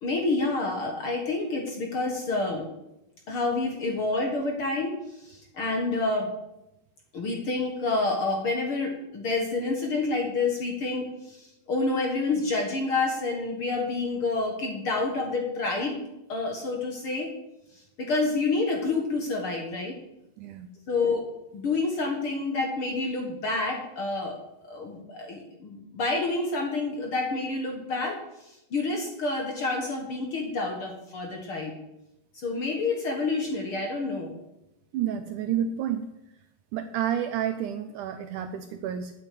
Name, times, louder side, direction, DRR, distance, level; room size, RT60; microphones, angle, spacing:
voice 1, 0.0-2.6 3.3-6.3 7.1-16.0 16.3-17.3 17.7-20.0 20.9-24.4 24.6-31.7 32.3-34.4, left 3 dB, 50° left, 1 dB, 1.8 m, -28 dB
voice 2, 20.4-20.7 34.9-36.1 36.7-39.1, right 9 dB, 80° right, 9 dB, 1.9 m, -30 dB
9.8 x 7.8 x 8.5 m, 0.91 s
omnidirectional pair, 4.1 m